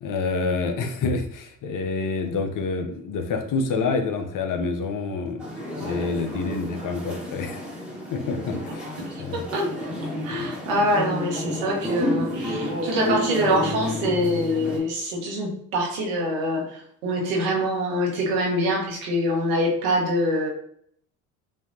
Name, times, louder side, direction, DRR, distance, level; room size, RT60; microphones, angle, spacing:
voice 1, 0.0-5.4 5.8-7.6 8.1-8.8 9.2-9.4 10.3-10.5, left 4 dB, 50° left, 5 dB, 0.8 m, -27 dB
sound 1, 5.4-14.8, left 1 dB, ahead, 1.7 m, -30 dB
voice 2, 9.0-9.7 10.2-20.5, equal, 75° right, -2 dB, 1.4 m, -25 dB
5.3 x 2.7 x 2.8 m, 0.66 s
hypercardioid pair, 60°, 42 cm